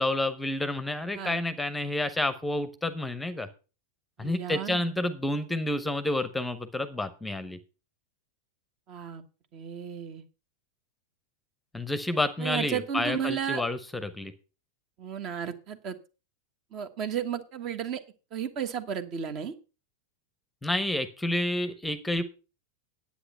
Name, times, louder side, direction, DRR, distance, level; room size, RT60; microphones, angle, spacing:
voice 1, 0.0-3.5 4.2-7.6 11.7-14.3 20.6-22.2, left 1 dB, 5° left, 12 dB, 0.9 m, -29 dB
voice 2, 4.2-4.8 8.9-9.2 9.5-10.2 12.4-13.6 15.0-16.0 16.7-18.0 18.3-19.5, right 8 dB, 35° right, 11 dB, 1.3 m, -33 dB
10.0 x 8.5 x 5.5 m, 0.33 s
figure-of-eight pair, 90°, 0 cm